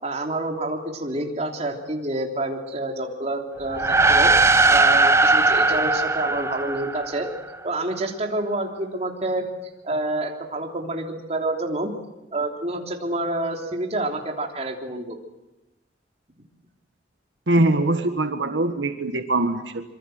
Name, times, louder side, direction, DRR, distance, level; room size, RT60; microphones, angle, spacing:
voice 1, 0.0-7.3 7.6-9.4 9.8-11.9 12.3-15.2, right 2 dB, 35° right, 2 dB, 3.3 m, -28 dB
sound 1, 3.7-7.4, right 3 dB, 15° right, 0.8 m, -19 dB
voice 2, 17.5-19.8, right 2 dB, 80° right, 7 dB, 1.7 m, -22 dB
25.5 x 24.0 x 7.9 m, 0.99 s
head